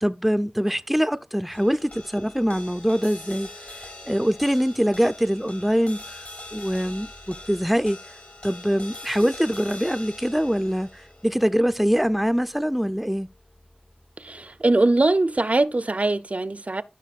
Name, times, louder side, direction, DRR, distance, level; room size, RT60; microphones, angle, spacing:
voice 1, 0.0-3.5 4.1-6.2 6.5-8.0 8.4-13.3, equal, 5° right, 0.5 m, -23 dB
sound 1, 1.5-14.0, left 2 dB, 65° left, 3.7 m, -43 dB
voice 2, 14.2-16.8, right 2 dB, 55° right, 0.6 m, -22 dB
14.5 x 5.7 x 2.4 m
wide cardioid pair, 45°, 3 cm